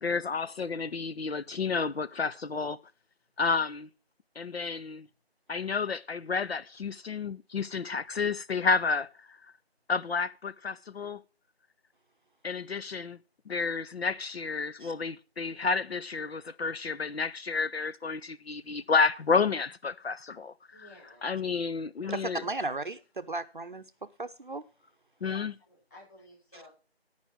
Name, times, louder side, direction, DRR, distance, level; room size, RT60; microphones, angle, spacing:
voice 1, 0.0-2.8 3.4-3.9 4.4-5.1 5.5-9.4 9.9-11.2 12.4-13.2 13.5-20.5 21.2-22.4 25.2-25.5, left 4 dB, 75° left, 0.6 m, -30 dB
voice 2, 20.7-21.5 22.0-22.8 25.2-26.7, left 1 dB, 15° left, 5.1 m, -53 dB
voice 3, 22.1-23.8 24.2-24.6, right 2 dB, 50° right, 0.6 m, -35 dB
14.0 x 5.6 x 6.1 m
figure-of-eight pair, 170°, 31 cm